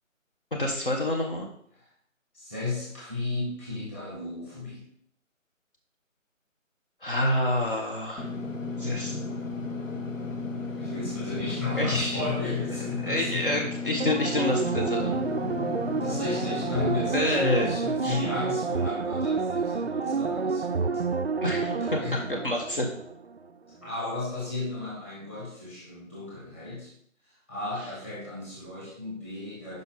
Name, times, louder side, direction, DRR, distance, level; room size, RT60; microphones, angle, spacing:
voice 1, 0.5-1.5 7.0-8.3 8.8-9.2 11.8-12.2 13.0-15.2 17.1-17.7 18.0-18.2 21.4-21.7 22.4-22.9, left 1 dB, 40° left, 0 dB, 1.2 m, -27 dB
voice 2, 2.3-4.9 10.5-13.7 16.0-21.0 21.6-22.5 23.7-26.9 27.2-29.8, left 3 dB, 10° left, -6 dB, 1.5 m, -34 dB
Engine / Mechanisms, 8.2-17.1, left 3 dB, 70° left, 1.4 m, -34 dB
sound 1, 14.0-23.4 23.7-23.8, right 4 dB, 50° right, 0.5 m, -29 dB
9.8 x 5.5 x 3.9 m, 0.66 s
figure-of-eight pair, 160°, 40 cm